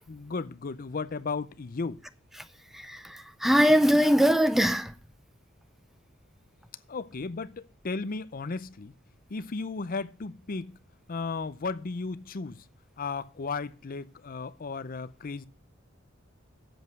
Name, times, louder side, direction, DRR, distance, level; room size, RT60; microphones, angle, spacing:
voice 1, 0.1-2.0 6.9-8.9 9.3-10.8 11.1-12.6 13.0-15.5, left 4 dB, 45° left, 0.6 m, -35 dB
voice 2, 2.9-4.9, equal, ahead, 0.4 m, -22 dB
7.8 x 7.3 x 7.9 m
head